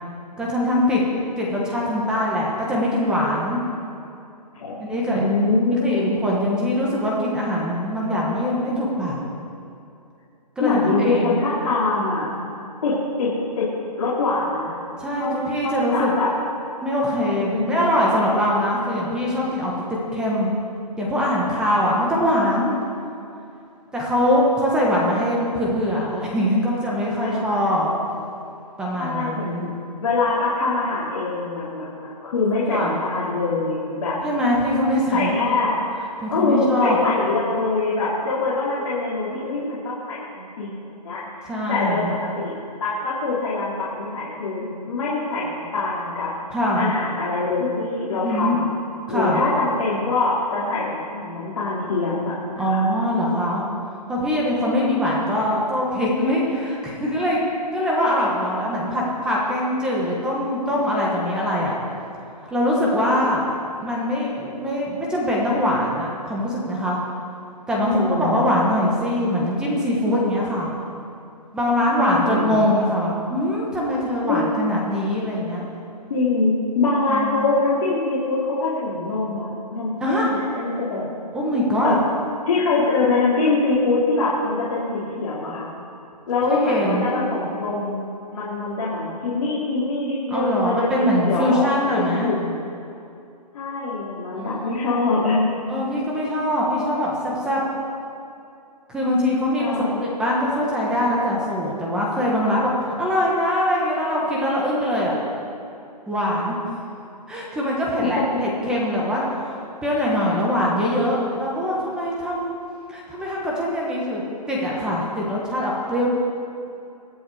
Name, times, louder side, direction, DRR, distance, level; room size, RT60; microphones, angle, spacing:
voice 1, 0.4-1.0 1.4-3.6 4.8-5.3 5.8-9.2 10.6-11.4 15.0-16.1 16.8-19.7 20.1-20.5 21.0-22.8 23.9-27.9 28.8-29.7 32.7-32.9 34.2-35.5 36.2-37.0 41.5-42.1 46.5-46.9 48.2-48.6 49.1-49.4 52.6-53.6 54.1-57.4 57.7-61.7 62.5-63.4 63.8-67.0 67.7-70.7 71.5-75.7 77.1-77.4 80.0-80.3 81.3-81.9 86.5-87.2 90.3-92.3 94.3-95.1 95.7-97.6 98.9-102.7 103.0-105.1 106.1-106.6 107.3-112.5 112.9-116.1, left 1 dB, 5° right, -4 dB, 1.2 m, -22 dB
voice 2, 5.1-6.2 10.6-12.3 12.8-13.3 13.6-13.7 14.0-14.7 15.2-15.3 15.6-16.3 17.5-18.0 27.2-27.6 28.9-29.7 30.0-34.2 35.1-35.7 36.3-42.0 42.3-42.5 42.8-46.3 46.7-48.6 49.1-52.9 67.8-68.4 71.9-72.6 74.2-74.4 76.1-81.0 81.8-82.0 82.4-85.7 86.3-91.6 91.9-92.6 93.5-95.5 99.6-100.0, left 3 dB, 45° left, -9 dB, 3.4 m, -24 dB
24.0 x 8.1 x 4.9 m, 2.6 s
hypercardioid pair, 170°, 21 cm